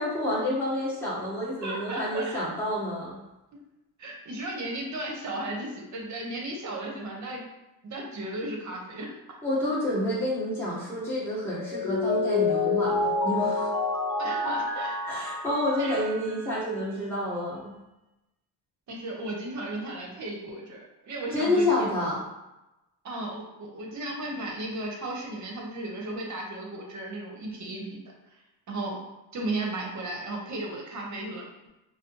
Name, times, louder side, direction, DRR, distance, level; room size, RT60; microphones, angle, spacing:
voice 1, 0.0-3.2 9.4-13.7 15.1-17.7 21.3-22.2, left 1 dB, 5° left, -8 dB, 1.1 m, -29 dB
voice 2, 1.6-2.5 4.0-7.4 7.8-9.2 14.2-15.0 15.8-16.1 18.9-21.7 23.0-28.0 28.7-29.0 29.3-31.7, right 2 dB, 45° right, 0 dB, 0.8 m, -35 dB
Mallet percussion, 11.6-16.5, left 3 dB, 50° left, 0.6 m, -28 dB
4.0 x 2.0 x 2.9 m, 0.97 s
cardioid pair, 115°, 43 cm